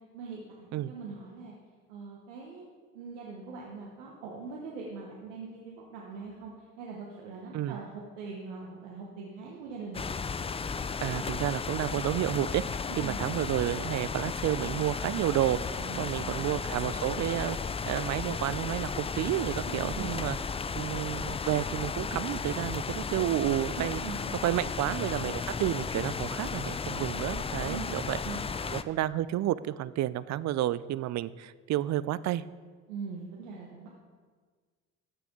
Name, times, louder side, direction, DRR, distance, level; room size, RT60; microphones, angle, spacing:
voice 1, 0.1-1.5 1.9-2.6 2.9-10.1 12.9-13.2 15.8-16.5 19.7-20.1 23.8-24.7 27.7-28.4 32.9-33.9, right 4 dB, 85° right, -2 dB, 1.1 m, -42 dB
sound 1, 9.9-28.8, left 5 dB, 15° left, 0.4 m, -34 dB
voice 2, 11.0-20.4 20.7-24.0 24.4-28.2 28.7-32.4, right 13 dB, 50° right, 17 dB, 0.4 m, -31 dB
13.5 x 6.0 x 3.7 m, 1.5 s
hypercardioid pair, 50°, 35 cm